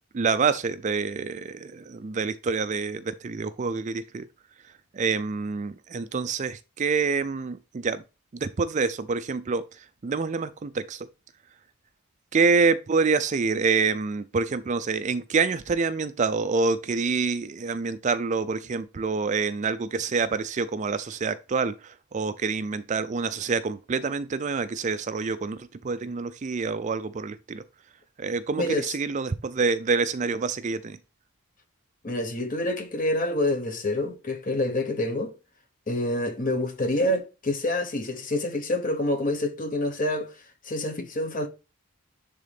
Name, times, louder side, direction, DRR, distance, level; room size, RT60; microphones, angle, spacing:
voice 1, 0.1-4.2 4.9-8.0 8.3-9.6 10.0-11.1 12.3-21.7 22.1-27.6 28.2-31.0, right 4 dB, 35° right, 0.4 m, -27 dB
voice 2, 28.6-29.0 32.0-35.3 35.9-40.3 40.6-41.5, left 1 dB, 40° left, 1.1 m, -27 dB
10.5 x 3.7 x 3.4 m
head